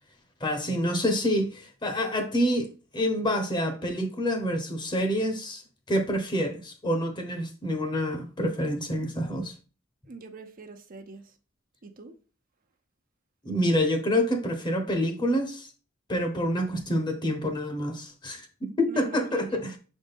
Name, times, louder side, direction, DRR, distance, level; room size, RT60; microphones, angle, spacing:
voice 1, 0.4-5.6 5.9-9.5 13.4-15.7 16.1-19.8, equal, 25° left, 1.1 m, -27 dB
voice 2, 10.1-11.3 11.8-12.2 18.9-19.6, right 3 dB, 45° right, 0.7 m, -44 dB
6.2 x 4.3 x 3.5 m
head